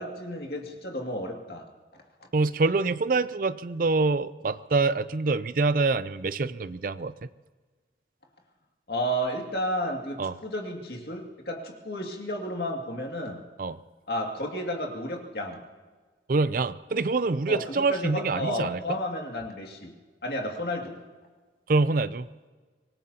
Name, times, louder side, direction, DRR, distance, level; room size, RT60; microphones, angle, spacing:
voice 1, 0.0-1.7 8.9-13.4 14.1-15.6 17.5-20.0 20.2-21.0, equal, 60° left, 1 dB, 2.3 m, -32 dB
voice 2, 2.3-7.1 10.2-10.3 13.6-13.8 16.3-18.8 21.7-22.3, right 3 dB, 50° right, 15 dB, 0.5 m, -25 dB
25.5 x 19.5 x 2.9 m, 1.4 s
head